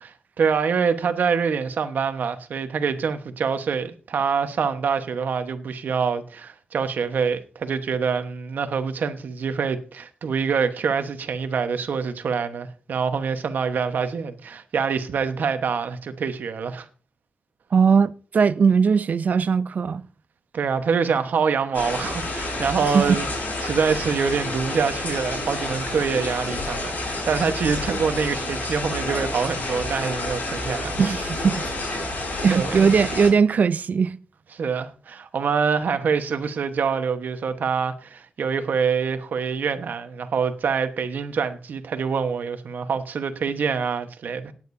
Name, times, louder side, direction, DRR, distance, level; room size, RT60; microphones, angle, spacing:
voice 1, 0.4-16.8 20.5-23.3 23.6-31.0 32.5-32.9 34.5-44.5, right 6 dB, 75° right, 1.2 m, -25 dB
voice 2, 17.7-20.0 22.9-23.0 31.0-31.6 32.4-34.2, right 6 dB, 60° right, 0.6 m, -19 dB
sound 1, 21.7-33.3, left 2 dB, 70° left, 6.6 m, -29 dB
18.0 x 9.1 x 2.7 m
wide cardioid pair, 100°, 3 cm